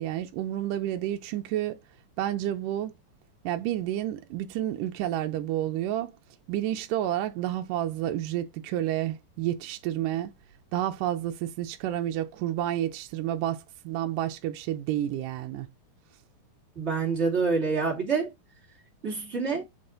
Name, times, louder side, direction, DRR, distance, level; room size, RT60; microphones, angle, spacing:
voice 1, 0.0-1.8 2.2-2.9 3.4-6.1 6.5-10.3 10.7-15.7, right 12 dB, 80° right, 2.2 m, -30 dB
voice 2, 16.8-18.3 19.0-19.6, right 4 dB, 20° right, 2.2 m, -26 dB
7.6 x 4.1 x 3.8 m
omnidirectional pair, 3.8 m